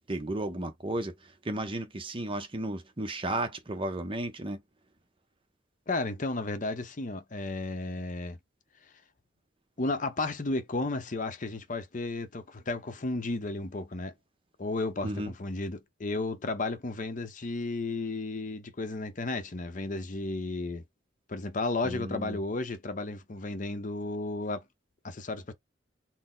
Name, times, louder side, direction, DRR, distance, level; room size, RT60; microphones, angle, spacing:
voice 1, 0.1-1.1 1.4-4.6 15.0-15.3 21.8-22.4, right 1 dB, 30° right, 0.7 m, -33 dB
voice 2, 5.9-8.4 9.8-14.1 14.6-20.8 21.3-24.6 25.0-25.5, left 2 dB, 45° left, 0.7 m, -33 dB
4.1 x 2.1 x 3.8 m
head